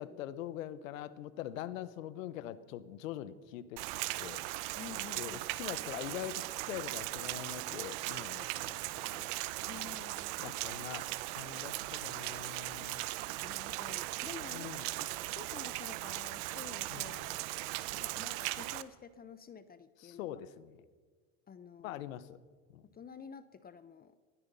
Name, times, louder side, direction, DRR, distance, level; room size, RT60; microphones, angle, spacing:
voice 1, 0.0-3.8 4.2-4.4 5.2-9.3 9.7-10.0 10.4-11.1 11.3-13.1 14.5-14.9 16.9-17.1 20.0-20.7 21.8-22.4 22.7-22.8, left 12 dB, 80° left, 16 dB, 1.1 m, -43 dB
Rain, 3.8-18.8, right 19 dB, 60° right, 0.9 m, -38 dB
voice 2, 4.7-5.4 9.6-10.6 13.4-14.7 15.3-17.4 17.9-20.4 21.5-22.1 22.9-24.2, left 7 dB, 25° left, 14 dB, 0.7 m, -50 dB
19.5 x 12.5 x 5.5 m, 1.5 s
supercardioid pair, 105°, 39 cm